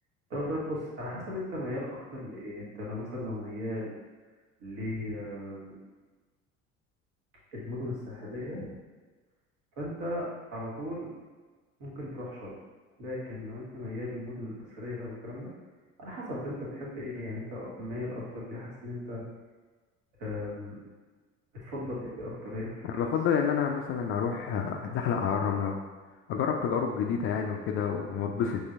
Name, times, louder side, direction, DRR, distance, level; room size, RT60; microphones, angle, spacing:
voice 1, 0.3-3.9 4.6-5.7 7.5-8.7 9.8-11.1 11.8-12.6 13.0-15.5 16.0-19.2 20.2-20.8 21.5-23.1, left 1 dB, 55° right, -5 dB, 1.4 m, -37 dB
voice 2, 22.9-25.8 26.3-28.6, left 7 dB, 35° left, 2 dB, 0.4 m, -29 dB
5.9 x 3.2 x 2.5 m, 1.3 s
figure-of-eight pair, 60°, 40 cm